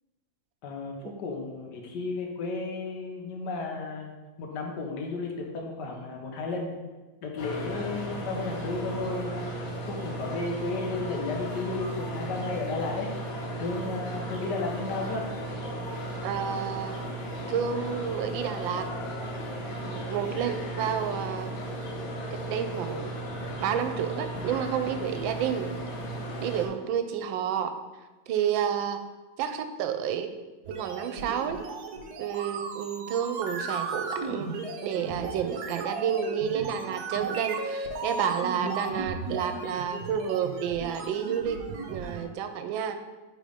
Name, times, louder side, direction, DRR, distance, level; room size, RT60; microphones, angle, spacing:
voice 1, 0.6-4.1 4.4-6.7 7.2-9.4 9.8-13.1 13.6-15.3, left 3 dB, 65° left, 1 dB, 1.5 m, -33 dB
sound 1, 7.4-26.7, right 1 dB, 90° left, 1.8 m, -35 dB
voice 2, 16.2-17.0 17.5-18.9 19.7-21.5 22.5-23.1 23.6-25.7 26.4-27.8 28.3-29.0 29.4-30.3 30.7-31.6 32.2-34.5 34.8-41.6 41.9-43.0, right 8 dB, 85° right, 8 dB, 1.3 m, -30 dB
sound 2, 30.6-42.2, right 4 dB, 65° right, 1.1 m, -35 dB
5.0 x 3.9 x 5.0 m, 1.2 s
omnidirectional pair, 2.1 m